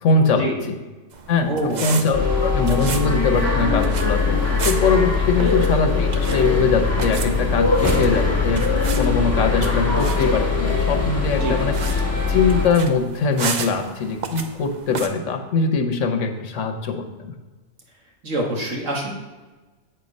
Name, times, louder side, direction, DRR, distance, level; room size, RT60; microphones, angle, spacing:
voice 1, 0.0-0.5 1.3-1.5 1.8-4.4 4.6-8.6 8.9-11.7 12.3-17.3, left 4 dB, 80° left, 5 dB, 1.2 m, -21 dB
sound 1, 1.1-15.1, right 5 dB, 50° right, 0.6 m, -34 dB
voice 2, 1.5-2.0 5.2-5.6 11.4-11.6 18.2-19.1, right 1 dB, 90° right, -1 dB, 1.9 m, -26 dB
sound 2, 2.1-12.6, left 4 dB, 15° left, 1.3 m, -21 dB
sound 3, 7.8-12.9, right 1 dB, 30° right, 2.2 m, -36 dB
7.8 x 4.5 x 5.3 m, 1.2 s
omnidirectional pair, 1.3 m